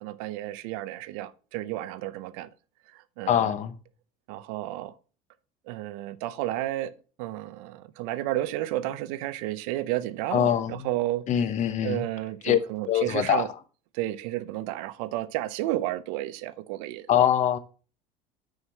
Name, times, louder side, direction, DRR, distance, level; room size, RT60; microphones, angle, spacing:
voice 1, 0.0-2.5 2.9-3.5 4.3-4.9 5.7-6.9 7.2-11.2 11.8-13.5 13.9-17.1, right 15 dB, 80° right, 0.6 m, -32 dB
voice 2, 3.3-3.7 10.3-10.7 11.3-12.0 12.4-12.6 12.9-13.4 17.1-17.6, left 10 dB, 40° left, 0.8 m, -23 dB
6.5 x 4.7 x 5.7 m
supercardioid pair, 120°, 18 cm